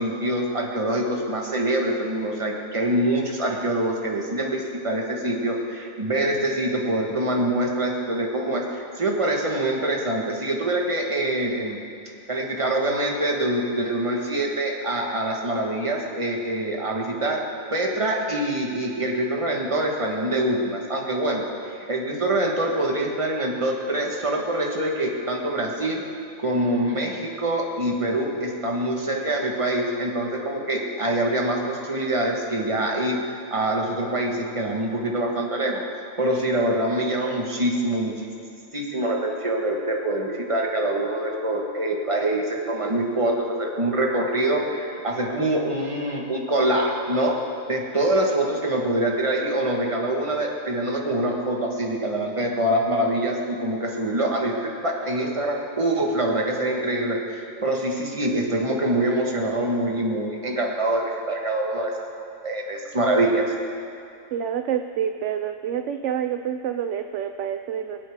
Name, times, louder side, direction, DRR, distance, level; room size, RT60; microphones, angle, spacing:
voice 1, 0.0-11.8 12.3-17.4 17.7-26.0 26.4-33.2 33.5-35.8 36.2-38.3 38.7-47.4 47.7-61.9 62.4-63.5, right 1 dB, 25° right, 0 dB, 1.5 m, -25 dB
voice 2, 64.3-68.0, right 9 dB, 70° right, 7 dB, 0.8 m, -28 dB
24.5 x 8.5 x 3.6 m, 2.7 s
omnidirectional pair, 1.4 m